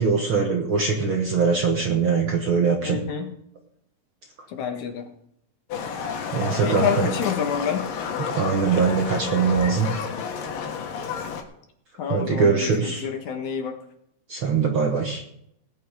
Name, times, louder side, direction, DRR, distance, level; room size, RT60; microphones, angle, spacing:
voice 1, 0.0-3.0 6.3-7.1 8.2-9.9 12.1-13.1 14.3-15.2, right 5 dB, 55° right, 2 dB, 1.6 m, -22 dB
voice 2, 2.8-3.4 4.5-5.1 6.6-7.9 12.0-13.8, left 7 dB, 65° left, 4 dB, 2.7 m, -28 dB
Livestock farm animals working animals, 5.7-11.4, left 6 dB, 90° left, 3.2 m, -30 dB
18.5 x 9.0 x 4.9 m, 0.75 s
omnidirectional pair, 3.8 m